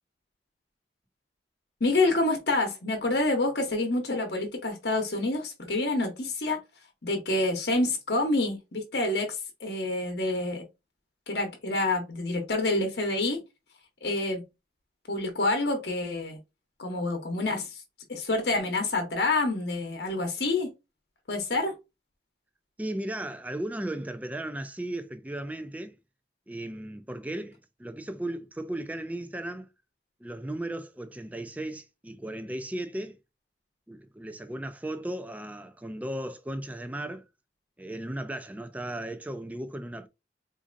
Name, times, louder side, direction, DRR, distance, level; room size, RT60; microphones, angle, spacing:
voice 1, 1.8-6.6 7.0-10.6 11.3-13.4 14.0-14.4 15.1-16.4 16.8-17.8 18.1-20.7 21.3-21.7, left 2 dB, 70° left, 0.9 m, -27 dB
voice 2, 22.8-26.0 26.5-29.7 30.2-33.2 33.9-37.2 37.8-40.1, right 1 dB, 10° right, 0.3 m, -36 dB
4.1 x 2.6 x 2.5 m
head